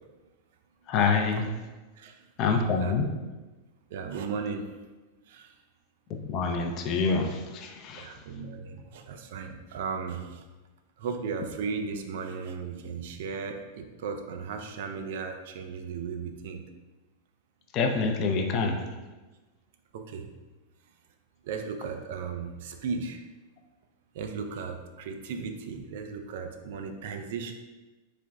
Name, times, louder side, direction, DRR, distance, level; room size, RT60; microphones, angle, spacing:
voice 1, 0.9-1.5 2.4-3.1 6.1-8.2 17.7-18.8, left 4 dB, 35° left, 4 dB, 0.4 m, -26 dB
voice 2, 2.0-2.3 2.8-3.0 3.9-4.7 5.3-5.6 7.9-10.4 11.0-16.6 19.9-20.3 21.4-23.2 24.1-27.5, right 5 dB, 55° right, 5 dB, 0.3 m, -36 dB
3.9 x 3.3 x 2.3 m, 1.2 s
figure-of-eight pair, 90°, 0 cm